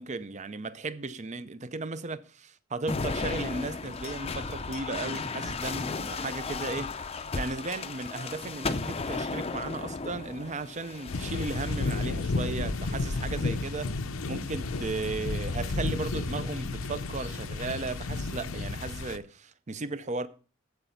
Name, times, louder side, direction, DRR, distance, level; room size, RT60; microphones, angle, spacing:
voice 1, 0.0-13.9 14.3-20.3, right 3 dB, 35° right, 0.6 m, -35 dB
sound 1, 2.9-12.2 12.9-13.5 14.6-15.2, left 4 dB, 30° left, 0.5 m, -35 dB
sound 2, 11.1-19.2, left 3 dB, 80° left, 0.7 m, -32 dB
15.0 x 5.0 x 5.7 m
head